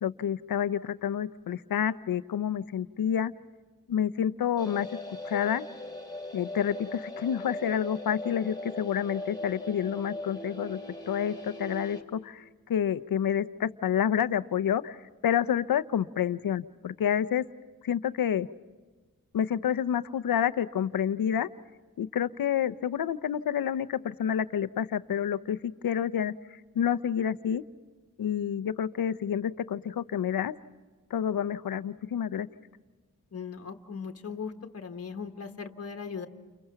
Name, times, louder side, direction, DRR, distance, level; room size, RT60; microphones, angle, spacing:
voice 1, 0.0-3.3 3.9-4.9 5.2-5.7 6.3-10.8 11.1-12.4 12.7-15.0 15.2-17.5 17.8-18.5 19.3-21.5 22.0-26.3 26.7-27.6 28.2-30.5 31.1-32.5, left 9 dB, 85° left, 12 dB, 0.7 m, -28 dB
sound 1, 4.6-12.0, left 1 dB, 10° left, 2.4 m, -40 dB
voice 2, 33.3-36.3, left 6 dB, 45° left, 5 dB, 1.3 m, -38 dB
30.0 x 29.5 x 5.8 m, 1.3 s
wide cardioid pair, 150°, 34 cm